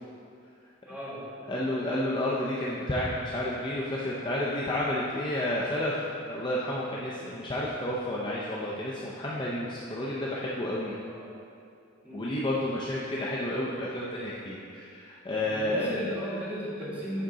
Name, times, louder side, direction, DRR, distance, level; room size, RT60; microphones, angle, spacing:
voice 1, 0.9-1.2 1.5-1.7 3.3-3.6 6.8-7.0 11.1-11.3 12.0-12.2 15.4-17.2, equal, 5° right, -10 dB, 1.7 m, -36 dB
voice 2, 1.5-6.0 6.2-11.0 12.1-16.0, left 1 dB, 20° left, -5 dB, 0.5 m, -31 dB
10.0 x 3.8 x 3.7 m, 2.5 s
head